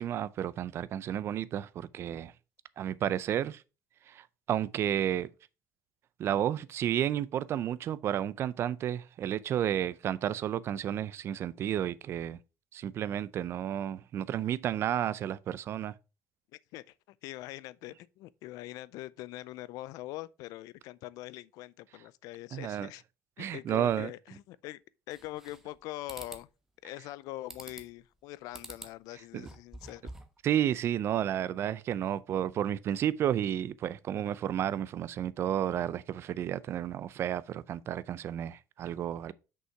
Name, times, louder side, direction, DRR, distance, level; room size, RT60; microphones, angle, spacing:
voice 1, 0.0-2.3 2.8-3.6 4.1-5.3 6.2-12.4 12.7-15.9 22.5-22.9 23.4-24.1 29.3-29.5 30.4-39.3, right 10 dB, 40° right, 0.5 m, -32 dB
voice 2, 17.2-23.0 23.4-24.8 25.1-26.5 26.8-30.1, left 17 dB, 70° left, 0.4 m, -43 dB
sound 1, 25.1-25.8 26.1-26.4 27.5-28.0 28.5-29.0 29.3-30.4, right 1 dB, 5° right, 1.0 m, -46 dB
6.5 x 5.4 x 4.5 m
cardioid pair, 145°, 6 cm